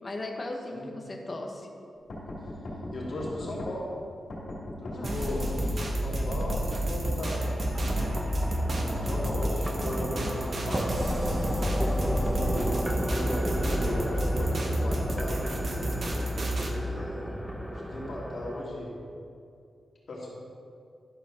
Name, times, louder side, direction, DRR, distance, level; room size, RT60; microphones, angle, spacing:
voice 1, 0.0-1.7 5.0-5.7, left 2 dB, 35° left, 2 dB, 1.2 m, -37 dB
sound 1, 2.1-3.7 4.3-5.9 6.5-8.1 8.7-10.3 11.1-12.7, left 1 dB, 75° left, 2.7 m, -38 dB
voice 2, 2.9-4.0 4.8-5.5 6.0-7.4 8.6-10.9 12.1-12.7 13.1-15.7 16.5-17.3 17.7-18.9 20.1-20.3, left 1 dB, 55° left, -5 dB, 2.8 m, -37 dB
sound 2, 5.0-16.7, right 1 dB, 45° right, 1.2 m, -30 dB
sound 3, 7.3-18.6, equal, 5° right, 0.7 m, -33 dB
12.0 x 5.0 x 6.5 m, 2.5 s
wide cardioid pair, 120°, 0 cm